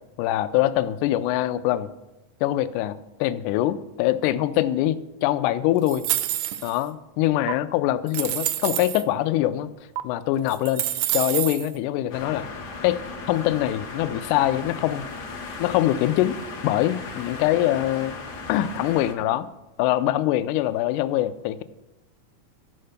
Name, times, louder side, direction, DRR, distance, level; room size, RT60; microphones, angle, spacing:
voice 1, 0.2-1.9 2.4-6.1 6.6-9.7 10.0-10.9 11.1-12.5 12.8-15.1 15.6-16.4 16.6-18.1 18.5-19.5 19.8-21.6, left 14 dB, 80° left, 12 dB, 2.0 m, -23 dB
sound 1, 5.9-6.8 7.5-7.6 8.1-9.0 10.0-10.1 10.5-11.7, right 13 dB, 80° right, 1.8 m, -27 dB
sound 2, 12.1-19.1, left 4 dB, 65° left, 1.0 m, -37 dB
12.5 x 5.6 x 6.5 m, 0.99 s
omnidirectional pair, 3.6 m